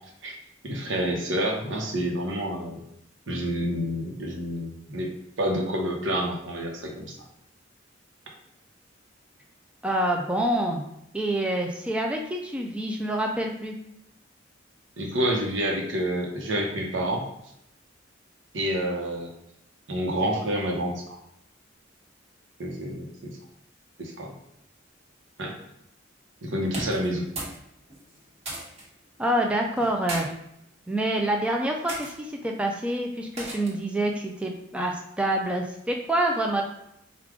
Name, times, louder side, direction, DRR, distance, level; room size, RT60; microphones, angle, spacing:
voice 1, 0.6-2.8 3.3-5.1 5.4-7.2 15.0-17.2 18.5-19.3 19.9-21.0 22.6-23.3 24.0-24.3 25.4-25.5 26.4-27.3, equal, 70° right, 0 dB, 1.0 m, -28 dB
voice 2, 9.8-10.8 11.1-13.8 29.2-30.3 30.9-36.6, right 1 dB, 5° right, 1 dB, 0.3 m, -27 dB
sound 1, 26.7-27.6 27.9-28.9 29.8-30.3 31.0-31.3 31.9-32.1 33.4-33.8, right 1 dB, 35° right, 1.1 m, -36 dB
4.7 x 2.4 x 3.6 m, 0.77 s
head